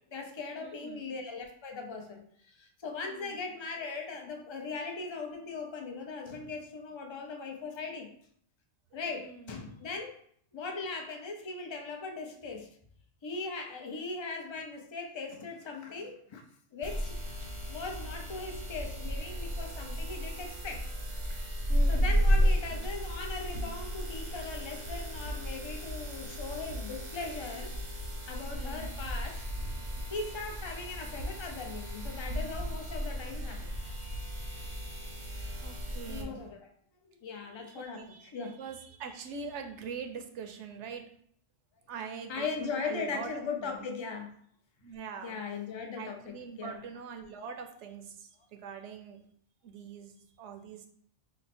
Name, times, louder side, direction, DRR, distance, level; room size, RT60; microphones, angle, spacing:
voice 1, 0.1-8.1 8.9-10.1 10.5-12.7 13.2-16.4 16.7-17.2 17.7-20.8 21.9-27.8 28.3-29.4 30.1-33.7 35.9-36.7 37.0-38.6 42.3-44.3 45.2-46.8, left 4 dB, 45° left, 3 dB, 0.3 m, -39 dB
voice 2, 0.6-1.1 3.1-3.4 9.2-9.6 21.7-22.2 28.6-28.9 35.2-36.5 37.5-41.0 41.9-43.3 43.6-43.9 44.8-45.4 46.0-49.2 49.6-50.9, right 5 dB, 75° right, 5 dB, 0.9 m, -43 dB
sound 1, 16.8-36.2, equal, 35° right, 0.5 m, -33 dB
4.1 x 2.1 x 4.2 m, 0.63 s
omnidirectional pair, 1.3 m